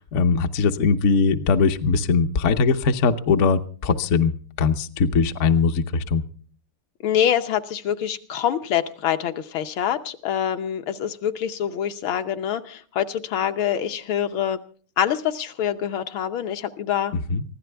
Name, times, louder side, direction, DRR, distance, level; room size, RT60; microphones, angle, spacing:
voice 1, 0.0-4.3 4.6-6.2 17.3-17.4, left 5 dB, 55° left, 7 dB, 0.8 m, -20 dB
voice 2, 7.0-14.6 15.0-17.1, left 9 dB, 70° left, 7 dB, 1.7 m, -25 dB
23.5 x 15.5 x 3.4 m, 0.43 s
omnidirectional pair, 2.4 m